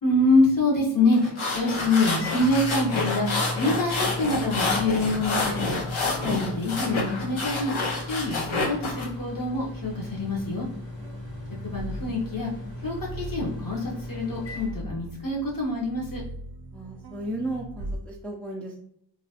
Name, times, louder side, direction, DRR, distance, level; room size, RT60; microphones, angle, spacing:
voice 1, 0.0-5.6 6.2-7.7 8.0-10.7 11.6-12.5 12.8-16.2, left 2 dB, 45° left, -4 dB, 1.1 m, -25 dB
sound 1, 1.1-9.0, left 3 dB, 90° left, 0.7 m, -28 dB
Microwave oven, 1.5-15.5, left 2 dB, 65° left, 1.4 m, -38 dB
sound 2, 10.0-18.0, right 1 dB, 60° right, 0.5 m, -40 dB
voice 2, 11.0-11.4 16.7-18.8, right 1 dB, 5° left, -1 dB, 0.4 m, -36 dB
3.0 x 2.3 x 2.8 m, 0.69 s
wide cardioid pair, 45°, 46 cm